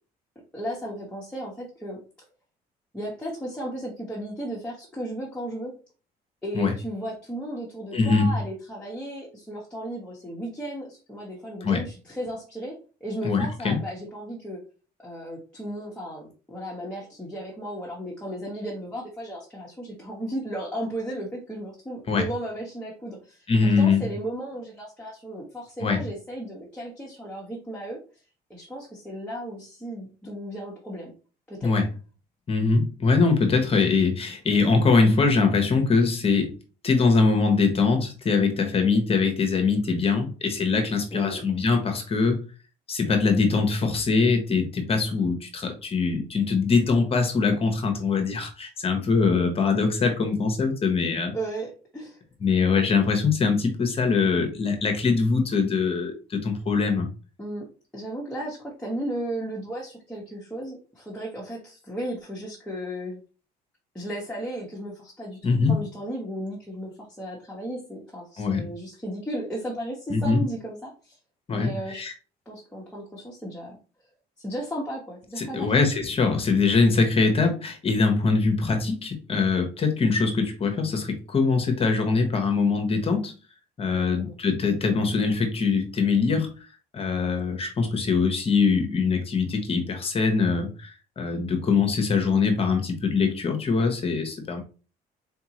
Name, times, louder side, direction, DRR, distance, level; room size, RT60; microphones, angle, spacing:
voice 1, 0.5-2.0 2.9-5.8 6.4-14.6 15.0-28.0 28.5-31.1 31.5-31.7 41.1-41.4 51.3-52.2 57.4-57.7 57.9-63.2 63.9-71.2 71.5-72.0 72.4-73.8 74.4-75.7 83.8-84.4, right 1 dB, 5° left, -4 dB, 1.3 m, -35 dB
voice 2, 7.9-8.4 11.6-11.8 13.2-13.8 22.1-22.2 23.5-24.1 25.8-26.0 31.6-31.9 32.5-36.5 36.8-42.4 42.9-51.3 52.4-57.1 65.4-65.8 68.4-68.7 70.1-70.4 71.5-72.1 75.4-83.3 83.8-86.6 86.9-94.6, left 4 dB, 35° left, 4 dB, 1.1 m, -23 dB
4.1 x 3.5 x 3.0 m, 0.36 s
cardioid pair, 110°, 17 cm